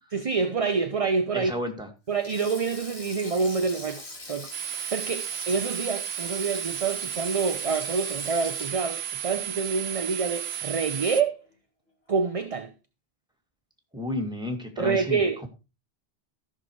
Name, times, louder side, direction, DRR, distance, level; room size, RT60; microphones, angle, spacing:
voice 1, 0.1-1.5 2.1-4.5 4.9-11.4 12.1-12.7 14.8-15.5, right 5 dB, 40° right, 0.7 m, -27 dB
voice 2, 1.3-1.9 13.9-15.5, left 1 dB, 5° right, 2.2 m, -32 dB
Sink (filling or washing), 2.1-10.6 10.8-11.1 12.2-12.5, left 2 dB, 75° left, 3.1 m, -43 dB
sound 1, 3.2-4.3 4.6-5.6 6.0-6.1 6.3-7.2 7.5-8.2 8.7-9.7 10.2-10.6, left 1 dB, 40° left, 2.8 m, -50 dB
sound 2, 4.5-11.2, right 10 dB, 75° right, 1.1 m, -34 dB
14.0 x 6.2 x 4.6 m
omnidirectional pair, 1.1 m